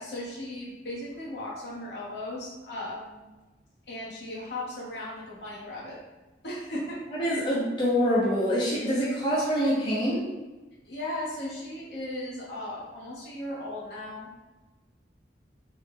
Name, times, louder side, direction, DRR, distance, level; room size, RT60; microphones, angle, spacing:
voice 1, 0.0-3.2 3.9-6.0 6.4-7.0 10.8-14.4, left 1 dB, 65° left, -6 dB, 0.9 m, -37 dB
voice 2, 7.1-10.2, equal, 25° left, -7 dB, 0.5 m, -25 dB
3.0 x 2.1 x 3.3 m, 1.2 s
head